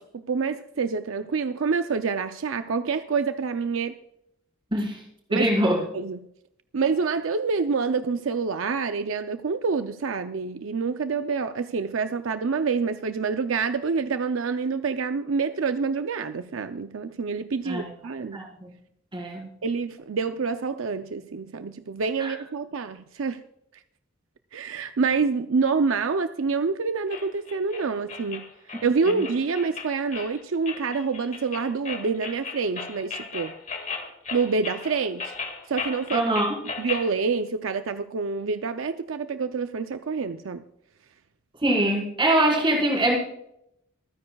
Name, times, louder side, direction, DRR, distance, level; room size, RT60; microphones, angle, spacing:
voice 1, 0.0-4.0 5.3-5.5 5.9-6.2 6.7-18.4 19.6-23.4 24.5-28.5 28.8-33.5 34.3-35.3 35.7-36.3 36.8-40.6, right 5 dB, 75° right, 9 dB, 0.5 m, -27 dB
voice 2, 5.3-5.8 17.7-17.8 18.3-18.5 19.1-19.5 22.2-22.3 36.1-36.5 41.6-43.1, right 1 dB, 25° right, -2 dB, 4.5 m, -23 dB
sound 1, 27.1-37.1, left 5 dB, 40° left, 2.0 m, -36 dB
25.5 x 9.7 x 2.3 m, 0.76 s
head